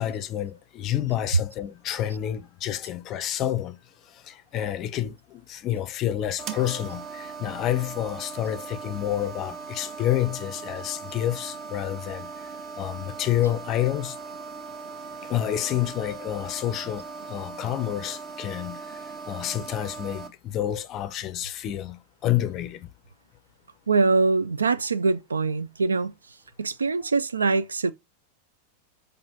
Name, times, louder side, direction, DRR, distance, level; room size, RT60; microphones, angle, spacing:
voice 1, 0.0-3.8 4.1-14.2 15.2-22.9, left 12 dB, 35° left, 0.5 m, -29 dB
sound 1, 6.4-20.3, right 5 dB, 35° right, 0.8 m, -39 dB
voice 2, 23.9-26.1 26.6-27.9, right 4 dB, 75° right, 0.3 m, -23 dB
5.1 x 3.0 x 2.8 m
figure-of-eight pair, 90°, 0 cm